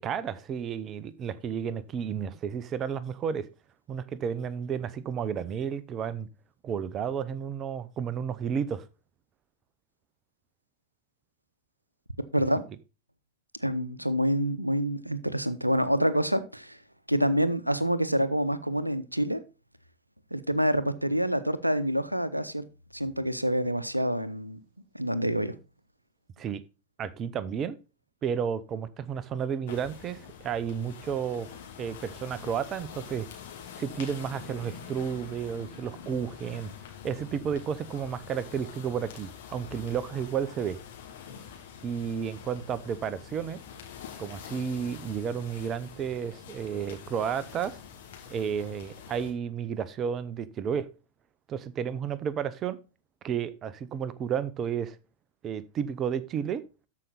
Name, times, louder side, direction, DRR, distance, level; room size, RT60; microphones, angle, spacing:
voice 1, 0.0-3.5 3.9-6.3 6.6-8.8 26.4-26.6 27.0-27.8 28.2-31.5 31.8-33.3 33.8-36.7 37.0-40.8 41.8-43.6 44.2-47.8 48.3-50.9 51.5-52.8 53.2-55.0 55.4-56.6, right 7 dB, 30° right, 0.7 m, -32 dB
voice 2, 13.6-16.8 17.1-19.4 20.3-22.7 22.9-24.6 24.9-25.6, equal, 90° right, 0.8 m, -27 dB
sound 1, 29.7-49.3, left 7 dB, 55° left, 2.5 m, -46 dB
13.0 x 5.3 x 4.0 m
figure-of-eight pair, 90°, 0 cm